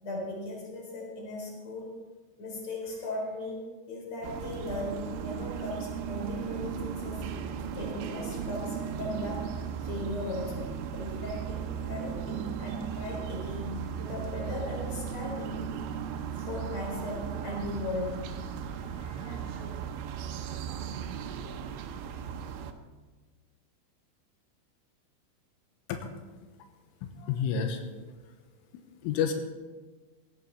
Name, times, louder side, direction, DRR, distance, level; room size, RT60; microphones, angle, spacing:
voice 1, 0.0-2.0 2.4-7.2 7.8-9.5 9.8-10.7 10.9-15.6 16.5-18.3 18.8-19.8, left 1 dB, 35° left, -2 dB, 5.0 m, -37 dB
sound 1, 4.2-22.7, right 7 dB, 85° right, 3.4 m, -36 dB
voice 2, 27.0-27.8 29.0-29.3, left 7 dB, 90° left, 5 dB, 3.6 m, -29 dB
17.0 x 14.0 x 4.2 m, 1.3 s
omnidirectional pair, 5.6 m